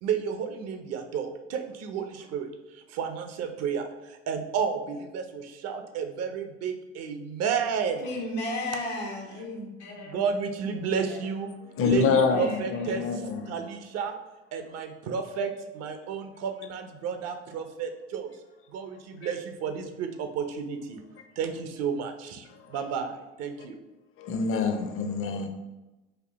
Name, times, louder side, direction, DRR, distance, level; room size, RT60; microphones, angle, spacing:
voice 1, 0.0-2.5 2.7-8.0 10.0-11.5 11.8-13.0 13.5-14.1 14.5-18.3 18.7-21.0 21.4-23.8, right 6 dB, 55° right, 6 dB, 0.6 m, -32 dB
voice 2, 8.0-10.2 10.7-11.2 12.3-13.2, left 1 dB, 85° left, -2 dB, 1.1 m, -35 dB
voice 3, 11.8-13.5 19.2-19.3 22.5-22.8 24.2-25.5, left 5 dB, 45° left, 5 dB, 0.6 m, -26 dB
4.2 x 2.7 x 3.1 m, 1.0 s
hypercardioid pair, 60°, 32 cm